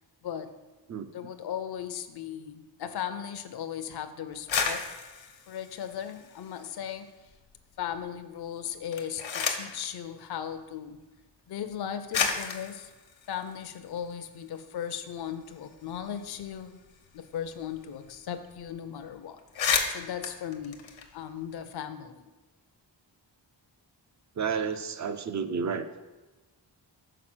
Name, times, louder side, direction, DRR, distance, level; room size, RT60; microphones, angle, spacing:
voice 1, 1.1-4.9 5.5-7.1 7.8-11.0 11.5-12.9 13.3-16.8 17.1-19.4 19.9-22.2, left 9 dB, 60° left, 8 dB, 0.5 m, -37 dB
sound 1, 4.3-6.9 7.3-8.0 8.7-9.8 10.9-11.0 11.7-11.8 12.1-14.4 14.8-14.9 15.2-17.8 18.0-18.2 18.4-18.7 19.1-19.2 19.4-21.6, left 6 dB, 85° left, 0.9 m, -33 dB
voice 2, 24.4-25.9, right 6 dB, 40° right, 10 dB, 0.4 m, -31 dB
6.0 x 4.7 x 6.0 m, 1.2 s
wide cardioid pair, 175°, 44 cm